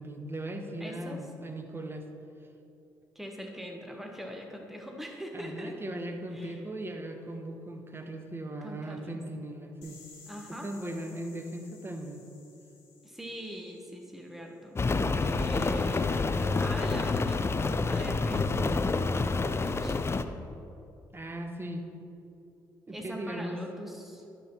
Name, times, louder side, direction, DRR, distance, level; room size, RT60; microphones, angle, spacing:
voice 1, 0.0-2.1 5.3-10.0 10.5-12.3 21.1-21.9 22.9-23.6, right 1 dB, 25° right, 5 dB, 1.0 m, -38 dB
voice 2, 0.8-1.2 3.1-5.8 6.3-6.6 8.6-9.2 10.3-10.7 13.0-14.8 15.2-20.0 22.9-24.3, equal, ahead, 2 dB, 1.3 m, -42 dB
sound 1, 9.8-14.6, left 4 dB, 75° left, 1.4 m, -56 dB
Rain, 14.7-20.2, left 3 dB, 25° left, 0.5 m, -28 dB
11.5 x 6.1 x 4.4 m, 2.7 s
hypercardioid pair, 45°, 10 cm